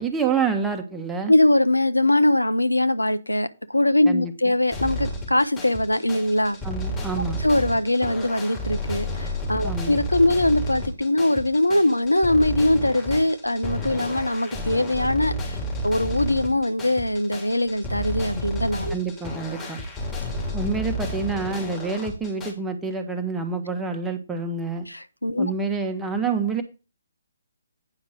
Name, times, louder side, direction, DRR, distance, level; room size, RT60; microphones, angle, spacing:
voice 1, 0.0-1.3 4.0-4.3 6.6-7.4 9.6-10.0 18.9-19.8 20.5-24.9 25.4-26.6, right 5 dB, 10° right, 1.3 m, -27 dB
voice 2, 1.3-6.6 7.4-15.6 15.8-18.9 24.9-25.5, left 1 dB, 85° left, 1.0 m, -22 dB
sound 1, 4.7-22.5, left 1 dB, 15° left, 3.7 m, -31 dB
9.7 x 5.9 x 5.1 m
figure-of-eight pair, 140°, 0 cm